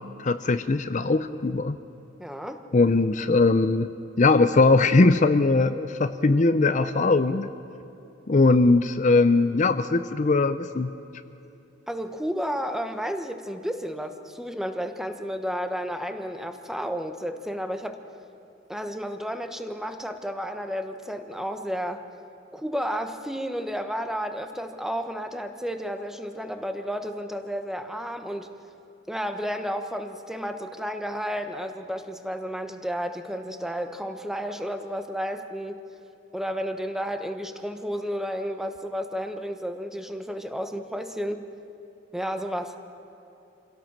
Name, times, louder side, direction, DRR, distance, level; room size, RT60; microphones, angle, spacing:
voice 1, 0.2-1.8 2.7-7.5 8.3-10.9, left 3 dB, 40° left, 10 dB, 0.6 m, -20 dB
voice 2, 2.2-2.6 11.9-18.0 18.7-22.0 22.5-28.5 29.1-35.8 36.3-41.5 42.1-42.8, equal, ahead, 7 dB, 1.1 m, -32 dB
26.0 x 17.0 x 7.4 m, 2.9 s
head